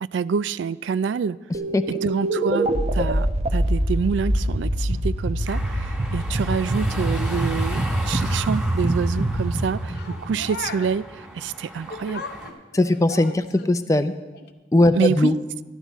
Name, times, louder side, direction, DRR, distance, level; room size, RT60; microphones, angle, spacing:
voice 1, 0.0-1.4 1.9-12.3 14.9-15.3, right 6 dB, 75° right, 17 dB, 0.3 m, -27 dB
sound 1, 1.5-10.9, right 1 dB, 35° right, 0.9 m, -25 dB
sound 2, 5.5-12.5, equal, 5° right, 1.8 m, -37 dB
sound 3, 9.9-11.0 11.9-13.8 14.3-14.5, left 4 dB, 60° left, 0.8 m, -37 dB
voice 2, 12.7-14.1 14.7-15.4, left 1 dB, 20° left, 10 dB, 0.5 m, -19 dB
13.0 x 12.0 x 4.1 m, 1.1 s
head